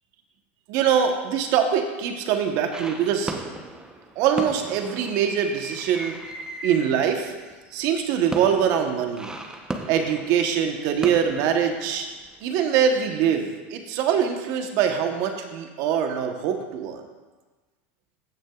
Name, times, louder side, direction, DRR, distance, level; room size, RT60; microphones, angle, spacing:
voice 1, 0.7-3.3 4.2-6.2 6.6-7.3 7.7-9.3 9.9-12.1 12.4-17.0, right 8 dB, 60° right, 5 dB, 1.1 m, -23 dB
sound 1, 2.7-12.4, right 2 dB, 10° right, 0.8 m, -36 dB
15.0 x 6.3 x 2.4 m, 1.3 s
supercardioid pair, 115°, 7 cm